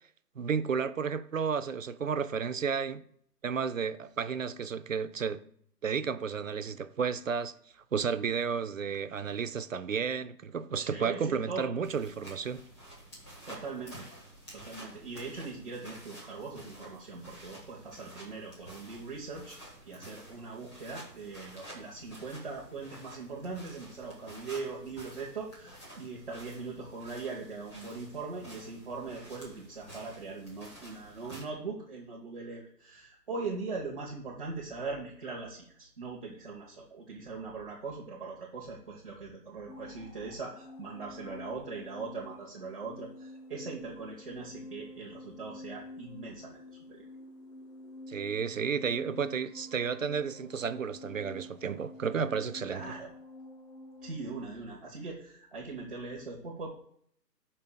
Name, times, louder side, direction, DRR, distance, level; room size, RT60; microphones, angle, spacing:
voice 1, 0.4-3.0 3.4-5.4 5.8-7.5 7.9-12.6 48.1-52.8, right 6 dB, 55° right, 0.5 m, -32 dB
voice 2, 10.8-11.7 13.4-14.1 14.5-19.6 19.8-47.1 52.7-53.1 54.0-56.7, right 4 dB, 35° right, 1.0 m, -41 dB
sound 1, 11.8-31.4, right 1 dB, 15° left, 1.5 m, -50 dB
sound 2, 39.7-54.2, left 1 dB, 40° left, 2.5 m, -48 dB
14.5 x 5.5 x 2.3 m
hypercardioid pair, 170°, 49 cm